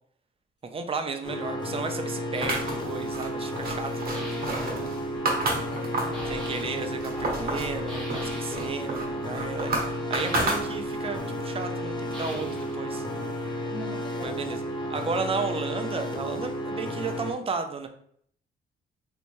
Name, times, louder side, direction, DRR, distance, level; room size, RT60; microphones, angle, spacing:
voice 1, 0.7-4.9 6.3-13.0 14.2-14.6 14.9-17.9, right 4 dB, 30° right, 6 dB, 0.5 m, -34 dB
sound 1, 1.2-17.3, equal, 20° left, 0.5 m, -32 dB
sound 2, 2.3-13.6, equal, ahead, 1.1 m, -44 dB
sound 3, 2.4-6.3 6.7-7.7 8.1-11.1, right 2 dB, 50° right, 1.0 m, -31 dB
voice 2, 5.7-6.8 13.7-14.9, left 1 dB, 60° left, -1 dB, 1.0 m, -43 dB
3.3 x 2.6 x 3.0 m, 0.64 s
cardioid pair, 90°, 20 cm